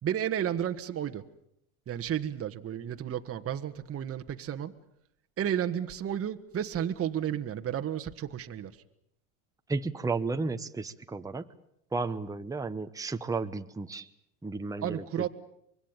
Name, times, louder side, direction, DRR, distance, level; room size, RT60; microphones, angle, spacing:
voice 1, 0.0-1.2 1.9-4.7 5.4-8.7 14.8-15.3, right 10 dB, 30° right, 6 dB, 1.5 m, -32 dB
voice 2, 9.7-11.5 11.9-14.1 14.4-15.3, right 3 dB, 10° right, 8 dB, 1.1 m, -33 dB
25.5 x 22.0 x 8.9 m, 0.73 s
supercardioid pair, 100°, 42 cm